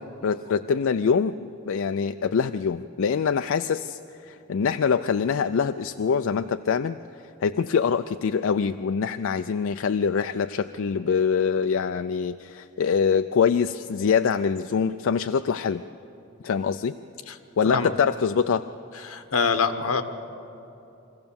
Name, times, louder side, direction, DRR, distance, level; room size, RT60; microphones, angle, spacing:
voice 1, 0.2-7.0 7.4-15.8 16.4-17.0 17.6-18.7, left 6 dB, 65° left, 10 dB, 0.4 m, -24 dB
voice 2, 19.0-20.0, left 5 dB, 90° left, 8 dB, 1.2 m, -24 dB
23.5 x 16.0 x 7.0 m, 2.8 s
head